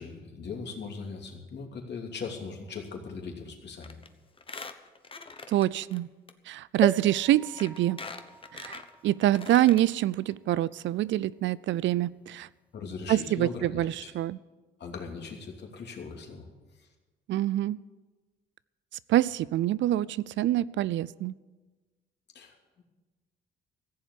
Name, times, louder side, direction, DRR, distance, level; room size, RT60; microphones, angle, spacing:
voice 1, 0.0-4.0 12.7-14.1 14.8-16.5 16.7-16.9 22.3-22.8, left 5 dB, 60° left, 2 dB, 2.9 m, -39 dB
Squeak, 3.8-4.1 4.4-6.0 6.3-6.4 7.2-7.3 7.6-9.9 10.3-10.4 10.6-10.7, left 4 dB, 25° left, 1.1 m, -43 dB
voice 2, 5.5-6.1 6.5-8.0 8.5-12.5 13.1-14.4 17.3-17.8 19.1-21.3, right 14 dB, 70° right, 20 dB, 0.4 m, -26 dB
sound 1, 6.8-10.5 11.1-11.2 11.4-11.5, right 1 dB, 5° right, 0.7 m, -38 dB
15.0 x 7.3 x 10.0 m, 1.2 s
cardioid pair, 90°, 20 cm